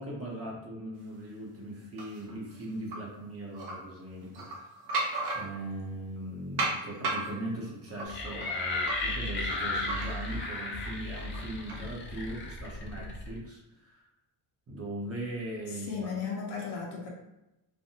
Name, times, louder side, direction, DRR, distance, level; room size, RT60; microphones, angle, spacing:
voice 1, 0.0-4.5 5.3-14.0 14.7-16.1, right 1 dB, 30° right, -3 dB, 0.7 m, -39 dB
sound 1, 2.0-3.0 3.5-3.7 4.2-5.8 6.6-10.5 10.8-11.9, right 2 dB, 60° right, 0.9 m, -35 dB
sound 2, 8.1-13.4, left 2 dB, 25° left, 0.5 m, -34 dB
voice 2, 15.9-17.1, left 5 dB, 60° left, -2 dB, 0.9 m, -35 dB
3.3 x 2.2 x 2.7 m, 0.93 s
cardioid pair, 140°, 45 cm